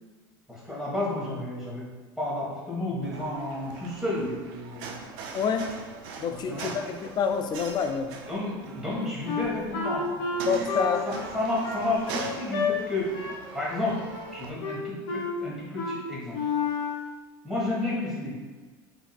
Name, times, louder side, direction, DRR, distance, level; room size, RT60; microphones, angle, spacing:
voice 1, 0.5-1.8 2.2-5.0 6.5-6.9 8.3-10.1 11.3-13.1 13.5-14.0 14.3-16.4 17.4-18.4, left 2 dB, 5° right, -7 dB, 1.3 m, -31 dB
sound 1, 3.0-14.5, right 5 dB, 70° right, 0.4 m, -41 dB
voice 2, 5.3-5.7 6.2-8.1 10.4-11.0, left 6 dB, 35° left, 6 dB, 0.4 m, -27 dB
Wind instrument woodwind instrument, 9.3-12.7 13.1-13.4 13.7-14.3 14.6-15.4 15.8-16.0 16.3-17.0, left 4 dB, 75° left, 1.0 m, -31 dB
3.7 x 2.7 x 2.3 m, 1.3 s
hypercardioid pair, 95°, 13 cm